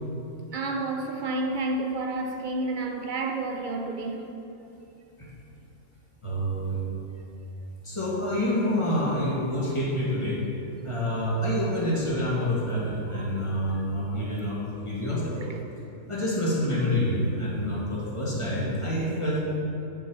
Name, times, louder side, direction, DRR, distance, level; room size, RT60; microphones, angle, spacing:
voice 1, 0.5-4.3 13.1-13.8 14.1-14.4 15.4-15.6, right 2 dB, 50° right, 0.6 m, -31 dB
voice 2, 6.2-6.8 7.8-10.4 10.8-15.4 16.1-19.4, equal, 25° left, 1.8 m, -27 dB
9.1 x 6.1 x 4.8 m
omnidirectional pair, 1.4 m